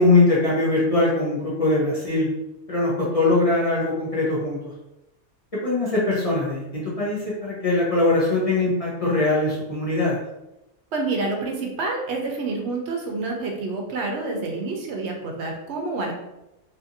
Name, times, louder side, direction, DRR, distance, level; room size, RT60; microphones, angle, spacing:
voice 1, 0.0-2.3 2.7-4.6 5.6-10.2, left 2 dB, 40° left, -7 dB, 0.6 m, -21 dB
voice 2, 10.9-16.1, right 3 dB, 70° right, 1 dB, 0.8 m, -28 dB
2.7 x 2.5 x 2.6 m, 0.92 s
omnidirectional pair, 1.2 m